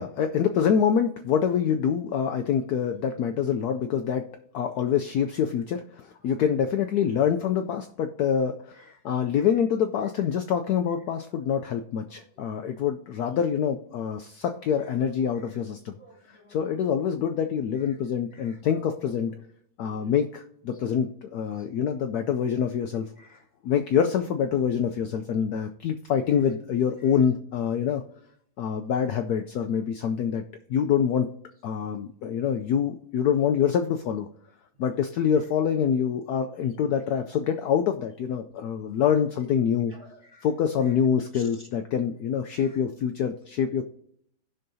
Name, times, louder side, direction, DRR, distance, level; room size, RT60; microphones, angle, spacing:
voice 1, 0.0-16.0 16.5-19.3 19.8-23.1 23.6-28.0 28.6-30.4 30.7-31.3 31.6-34.3 34.8-39.9 40.4-43.8, left 8 dB, 80° left, 6 dB, 0.8 m, -26 dB
voice 2, 16.0-16.6 18.3-18.6 19.8-20.1 20.7-20.8 21.6-21.7 23.2-23.4 39.9-40.5 40.8-40.9 41.3-41.5 42.5-42.8, left 1 dB, 15° right, 0 dB, 2.2 m, -53 dB
16.0 x 5.5 x 2.7 m, 0.68 s
omnidirectional pair, 2.2 m